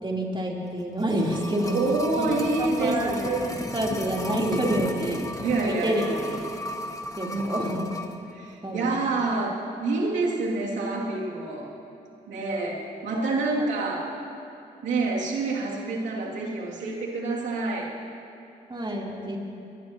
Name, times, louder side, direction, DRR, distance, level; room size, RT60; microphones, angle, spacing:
voice 1, 0.0-1.8 2.2-3.3 3.6-5.3 5.6-6.0 7.2-7.8 8.6-9.0 18.7-19.4, right 1 dB, 25° right, -3 dB, 3.7 m, -28 dB
sound 1, 0.8-8.2 8.5-8.6, left 1 dB, 20° left, 1.7 m, -35 dB
voice 2, 1.7-3.5 5.4-6.2 7.3-7.7 8.3-11.7 12.3-14.1 14.8-17.9, right 3 dB, 85° right, -4 dB, 2.8 m, -27 dB
23.0 x 19.5 x 3.0 m, 2.8 s
supercardioid pair, 40°, 18 cm